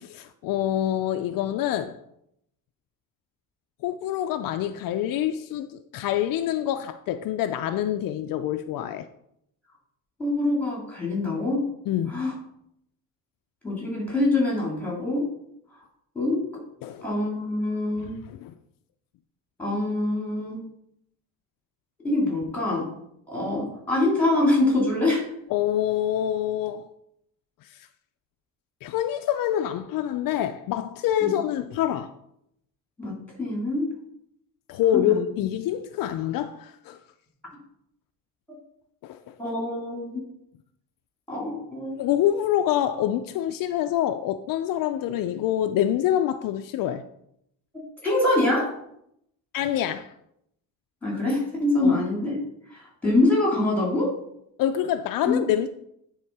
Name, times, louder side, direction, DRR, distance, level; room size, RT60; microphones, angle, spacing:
voice 1, 0.0-2.0 3.8-9.1 11.9-12.2 16.8-17.1 18.3-18.5 25.5-26.9 27.6-27.9 28.8-32.1 34.7-37.0 39.0-39.4 42.0-47.0 49.5-50.1 51.8-52.0 54.6-55.7, left 11 dB, 65° left, 0.5 m, -26 dB
voice 2, 10.2-11.7 12.1-12.3 13.6-15.3 16.1-16.4 17.0-18.1 19.6-20.6 22.0-22.9 23.3-25.3 31.2-31.4 33.0-33.9 34.9-35.2 39.4-40.2 41.3-42.1 47.7-48.7 51.0-52.3 52.7-54.1 55.2-55.4, left 2 dB, 5° left, 3.0 m, -25 dB
9.7 x 3.8 x 4.7 m
cardioid pair, 145°, 36 cm